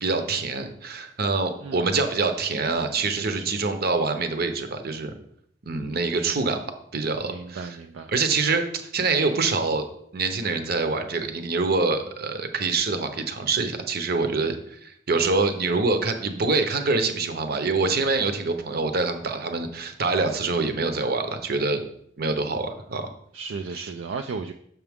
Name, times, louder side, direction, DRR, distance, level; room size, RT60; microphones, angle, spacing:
voice 1, 0.0-5.1 5.6-6.6 6.9-7.7 8.1-9.8 10.1-21.8 22.2-23.1 23.7-23.9, right 3 dB, 55° right, 7 dB, 0.8 m, -25 dB
voice 2, 1.6-2.0 3.0-3.5 5.8-6.4 7.2-8.1 23.3-24.5, right 4 dB, 70° right, 6 dB, 0.4 m, -36 dB
6.8 x 5.9 x 3.6 m, 0.69 s
head